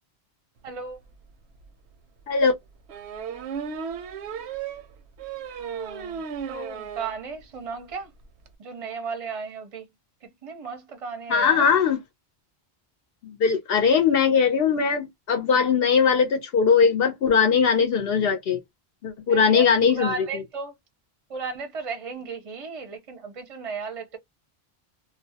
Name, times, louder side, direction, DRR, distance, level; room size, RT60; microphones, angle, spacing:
voice 1, 0.6-1.0 5.5-8.1 8.6-9.8 10.2-11.7 19.3-19.7 20.0-20.7 21.3-24.2, right 5 dB, 40° right, 0.6 m, -35 dB
sound 1, 1.1-1.2 1.6-1.7 2.9-7.2 7.6-7.7 7.9-8.0 8.2-8.5, right 7 dB, 85° right, 0.8 m, -35 dB
voice 2, 11.3-12.0 13.4-18.6 19.0-20.1, left 6 dB, 70° left, 0.8 m, -20 dB
2.3 x 2.1 x 2.7 m
omnidirectional pair, 1.1 m